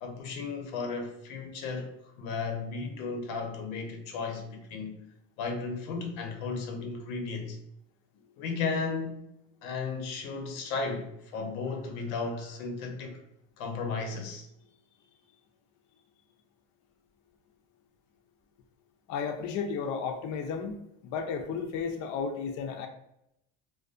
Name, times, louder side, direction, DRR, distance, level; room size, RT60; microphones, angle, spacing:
voice 1, 0.0-5.0 5.4-7.6 8.4-9.2 9.6-13.2 13.6-14.5, left 4 dB, 90° left, 0.6 m, -34 dB
voice 2, 19.1-20.7 21.0-22.9, left 6 dB, 50° left, 0.4 m, -33 dB
2.3 x 2.2 x 2.5 m
supercardioid pair, 95°, 40 cm